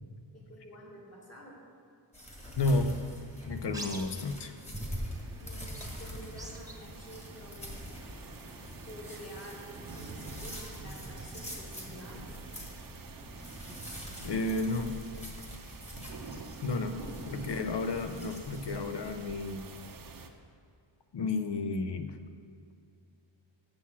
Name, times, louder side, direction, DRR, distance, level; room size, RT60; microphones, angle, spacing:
voice 1, 0.3-1.6 5.4-7.9 8.9-12.4 16.8-17.2, equal, 30° left, -2 dB, 1.8 m, -49 dB
sound 1, 2.1-19.1, equal, 15° left, 1.5 m, -45 dB
sound 2, 2.3-14.8, right 1 dB, 10° right, 0.7 m, -50 dB
voice 2, 2.6-2.9 3.5-4.5 14.2-15.0 16.6-17.0 17.3-19.7 21.1-22.2, left 2 dB, 60° left, 8 dB, 0.7 m, -31 dB
sound 3, 4.8-20.3, right 4 dB, 45° right, 0.7 m, -47 dB
7.3 x 6.4 x 7.3 m, 2.4 s
wide cardioid pair, 145°, 47 cm